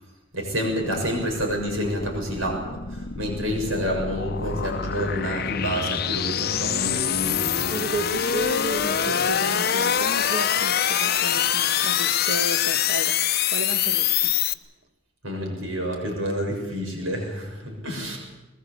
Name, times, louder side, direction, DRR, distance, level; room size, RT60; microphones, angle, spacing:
voice 1, 0.3-7.7 15.2-18.2, equal, 80° right, 1 dB, 6.9 m, -28 dB
sound 1, 0.8-14.5, left 9 dB, 50° left, 0.7 m, -25 dB
voice 2, 7.7-14.3, right 1 dB, 55° right, 8 dB, 1.5 m, -33 dB
21.0 x 20.5 x 8.4 m, 1.1 s
head